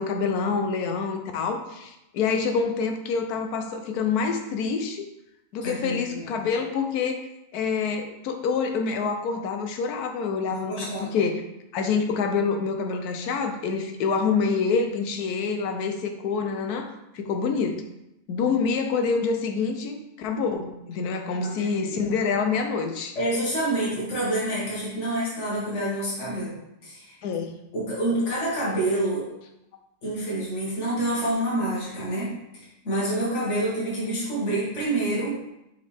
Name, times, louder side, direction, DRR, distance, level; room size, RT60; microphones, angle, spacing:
voice 1, 0.0-5.1 5.5-7.2 7.5-11.4 11.7-17.8 18.3-23.2 27.2-27.5, left 5 dB, 75° left, 5 dB, 1.2 m, -26 dB
voice 2, 5.6-6.4 10.5-11.2 21.4-22.1 23.2-27.2 27.7-29.3 30.0-32.3 32.8-35.4, right 1 dB, 45° left, -8 dB, 2.2 m, -27 dB
6.8 x 4.1 x 3.4 m, 0.86 s
omnidirectional pair, 1.7 m